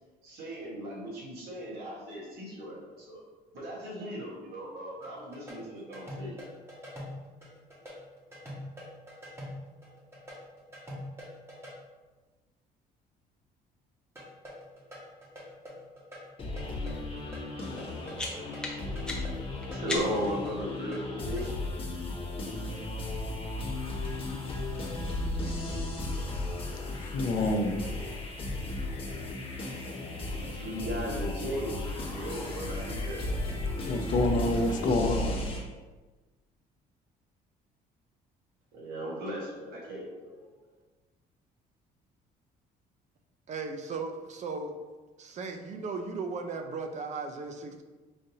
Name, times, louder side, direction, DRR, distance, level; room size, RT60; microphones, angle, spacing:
voice 1, 0.2-3.2 3.5-6.4 19.7-21.7 30.4-33.5 34.1-34.2 34.5-34.8 35.0-35.1 38.7-40.5, equal, 70° right, -4 dB, 1.5 m, -37 dB
sound 1, 5.0-11.7 14.2-21.5, left 1 dB, 15° right, 1.2 m, -45 dB
sound 2, 16.4-35.6, left 2 dB, 30° left, 1.0 m, -35 dB
sound 3, 17.8-20.4, left 2 dB, 5° left, 0.7 m, -38 dB
voice 2, 27.0-27.7 33.8-35.5, left 2 dB, 50° left, 4 dB, 0.6 m, -27 dB
voice 3, 43.5-44.7 45.2-47.8, right 4 dB, 45° right, 5 dB, 0.5 m, -36 dB
5.0 x 2.7 x 2.7 m, 1.3 s
cardioid pair, 110°, 17 cm